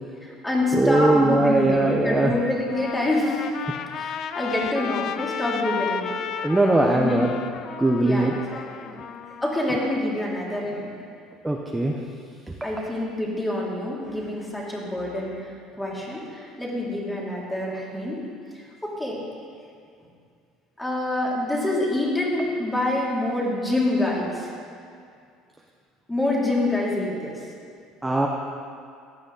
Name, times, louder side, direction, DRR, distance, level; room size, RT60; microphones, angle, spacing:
voice 1, 0.2-3.5 3.9-6.1 6.4-6.5 6.9-7.2 8.0-8.9 9.4-10.9 12.6-18.2 18.5-19.2 20.8-24.5 26.1-27.5, left 1 dB, 10° left, -4 dB, 2.7 m, -26 dB
voice 2, 0.7-2.3 6.4-7.3 7.8-8.3 11.4-12.0 12.5-12.6 28.0-28.3, right 2 dB, 10° right, 0 dB, 0.8 m, -20 dB
Trumpet, 2.5-10.0, left 7 dB, 45° left, 0.5 m, -33 dB
15.5 x 11.0 x 3.9 m, 2.3 s
cardioid pair, 135°, 0 cm